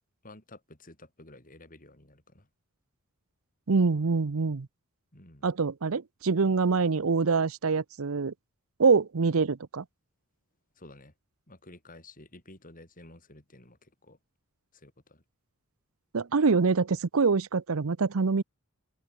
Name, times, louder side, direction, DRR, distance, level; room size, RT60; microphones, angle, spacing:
voice 1, 0.2-2.5 5.1-5.5 10.8-11.1 11.5-14.2 14.7-15.2, left 2 dB, 40° left, 7.3 m, -52 dB
voice 2, 3.7-4.7 5.4-8.3 8.8-9.8 16.1-18.4, right 4 dB, 65° right, 0.7 m, -25 dB
open air
head